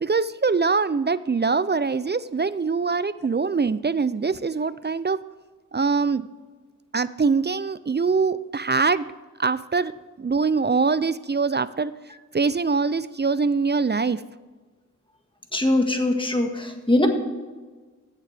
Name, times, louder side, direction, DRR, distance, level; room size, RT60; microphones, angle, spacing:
voice 1, 0.0-5.2 5.7-6.3 6.9-9.1 9.4-9.9 10.2-11.9 12.3-14.2, right 4 dB, 35° right, 16 dB, 0.4 m, -23 dB
voice 2, 15.5-17.1, left 1 dB, 15° left, 3 dB, 1.7 m, -22 dB
15.5 x 7.4 x 3.4 m, 1.3 s
wide cardioid pair, 45°, 32 cm